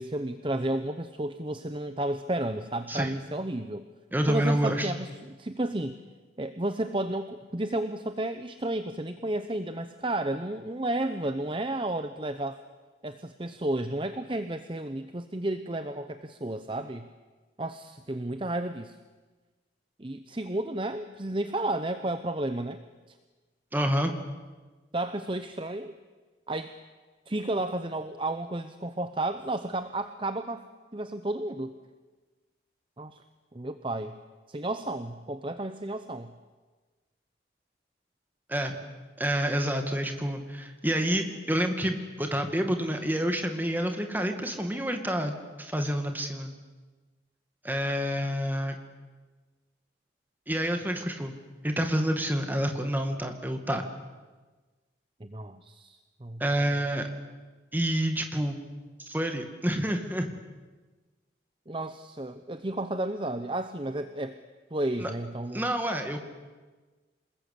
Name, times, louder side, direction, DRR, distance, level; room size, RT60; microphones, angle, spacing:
voice 1, 0.0-3.8 4.3-6.0 6.4-12.6 13.0-17.1 17.6-19.0 20.0-22.8 24.9-25.9 26.5-26.7 27.3-30.6 30.9-31.7 33.0-33.2 33.5-34.2 34.5-36.3 55.2-56.7 61.7-64.4 64.7-65.6, right 1 dB, 30° right, 9 dB, 0.8 m, -32 dB
voice 2, 4.1-4.9 23.7-24.2 38.5-38.7 39.2-46.5 47.6-48.8 50.5-51.3 51.6-53.8 56.4-57.1 57.7-58.6 59.1-60.3 65.0-65.1 65.5-66.2, equal, 10° right, 5 dB, 2.2 m, -28 dB
27.5 x 20.5 x 8.5 m, 1.3 s
head